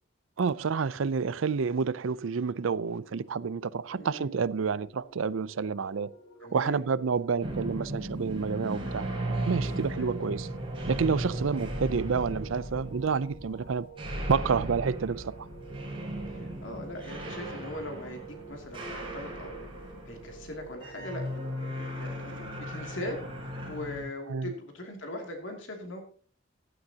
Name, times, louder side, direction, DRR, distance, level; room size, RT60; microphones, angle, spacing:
voice 1, 0.4-6.1 6.5-9.1 9.5-10.5 10.9-13.9 14.3-15.5 24.3-24.5, right 5 dB, 80° right, 0.5 m, -29 dB
sound 1, 2.6-22.0, right 6 dB, 90° left, 4.2 m, -50 dB
voice 2, 3.9-4.4 6.4-6.8 10.0-10.3 11.7-11.9 16.3-18.2 18.5-19.7 20.1-23.2 23.4-26.0, left 1 dB, 70° left, 2.6 m, -40 dB
sound 2, 7.4-24.1, right 1 dB, 25° right, 5.0 m, -37 dB
16.0 x 11.5 x 2.8 m
head